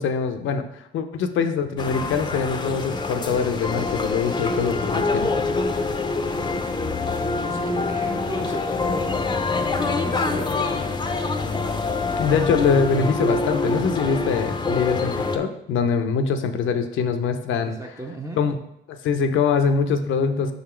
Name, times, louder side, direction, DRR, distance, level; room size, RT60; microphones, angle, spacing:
voice 1, 0.0-5.3 12.2-17.7 18.4-18.5 18.9-20.5, left 5 dB, 75° left, 8 dB, 0.6 m, -23 dB
sound 1, 1.8-15.4, left 3 dB, 20° left, 0.6 m, -25 dB
voice 2, 6.3-6.6 7.4-9.3 9.7-11.1 17.6-18.4, right 1 dB, 15° right, 0 dB, 0.7 m, -36 dB
5.6 x 4.0 x 4.4 m, 0.78 s
cardioid pair, 90°, 20 cm